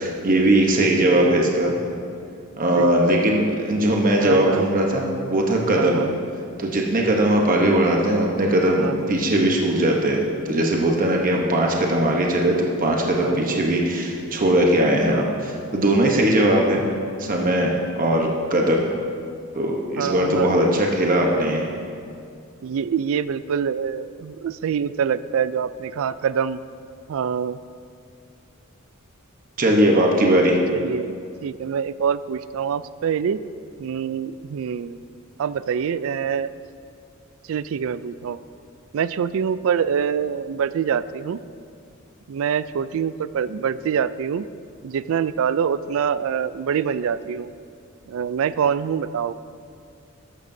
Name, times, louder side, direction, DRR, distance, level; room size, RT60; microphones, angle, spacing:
voice 1, 0.0-1.7 2.6-6.0 6.6-16.8 17.2-18.9 19.5-21.6 29.6-30.6, right 1 dB, 40° right, 0 dB, 1.0 m, -20 dB
voice 2, 1.0-1.5 2.7-2.9 4.2-4.7 5.8-6.2 8.8-9.1 13.2-13.6 20.0-20.8 22.6-26.6 27.1-27.6 30.7-31.1 31.4-33.4 33.8-35.0 35.4-36.5 37.5-38.4 38.9-41.4 42.3-44.5 44.8-47.5 48.1-49.3, right 7 dB, 70° right, 16 dB, 0.3 m, -25 dB
14.0 x 11.0 x 2.7 m, 2.4 s
head